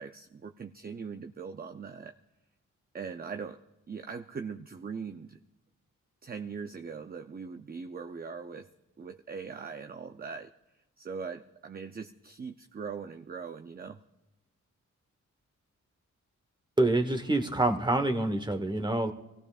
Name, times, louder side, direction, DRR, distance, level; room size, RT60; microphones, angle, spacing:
voice 1, 0.0-2.2 2.9-3.6 3.9-5.4 6.2-8.7 9.0-10.5 11.0-14.0, right 5 dB, 30° right, 7 dB, 0.6 m, -40 dB
voice 2, 16.8-19.1, right 2 dB, 15° right, 7 dB, 1.2 m, -26 dB
24.5 x 17.0 x 2.5 m, 0.98 s
cardioid pair, 80°, 30 cm